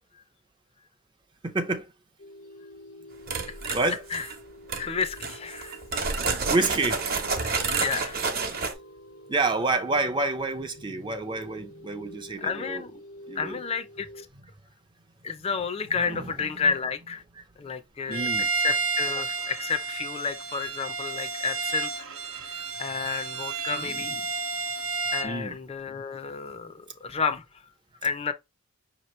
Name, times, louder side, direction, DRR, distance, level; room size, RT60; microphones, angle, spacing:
voice 1, 1.4-1.9 3.7-4.0 6.5-7.1 8.5-8.6 9.3-12.8 13.3-13.6 16.1-16.5 18.1-18.5 23.7-24.2 25.2-25.6, right 3 dB, 20° right, 0.5 m, -28 dB
sound 1, 2.2-14.2, equal, 80° left, 0.8 m, -48 dB
sound 2, 3.3-4.4 4.7-4.8 5.2-8.7, right 4 dB, 45° right, 0.9 m, -29 dB
voice 2, 3.4-3.8 4.1-4.3 4.8-5.8 7.7-8.2 12.4-13.0 13.4-14.3 15.2-17.2 17.6-18.3 18.6-21.9 22.3-24.2 25.1-27.4 28.0-28.3, left 5 dB, 30° left, 0.5 m, -31 dB
Bowed string instrument, 18.1-25.4, right 4 dB, 85° right, 0.8 m, -31 dB
5.6 x 2.9 x 3.1 m
head